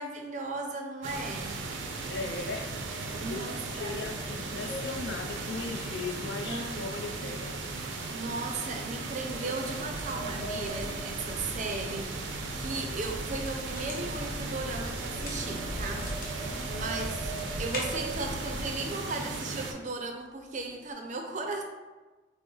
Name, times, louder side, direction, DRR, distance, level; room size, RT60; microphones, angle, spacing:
voice 1, 0.0-1.6 3.1-4.0 6.4-6.9 8.1-16.1 16.7-17.3 17.6-21.6, right 3 dB, 40° right, 3 dB, 0.5 m, -36 dB
sound 1, 1.0-19.7, right 3 dB, 85° right, 0.6 m, -37 dB
sound 2, 1.7-6.7 7.0-7.4 7.9-8.0 8.8-12.1 12.4-18.7 19.3-19.4 19.7-19.9 20.3-20.9, right 1 dB, 15° left, 0.7 m, -45 dB
voice 2, 2.1-2.7 3.3-3.4 3.8-7.5, left 3 dB, 70° left, 4 dB, 0.5 m, -37 dB
sound 3, 9.7-18.7, left 1 dB, 50° left, 0.9 m, -40 dB
6.0 x 2.1 x 3.8 m, 1.2 s
head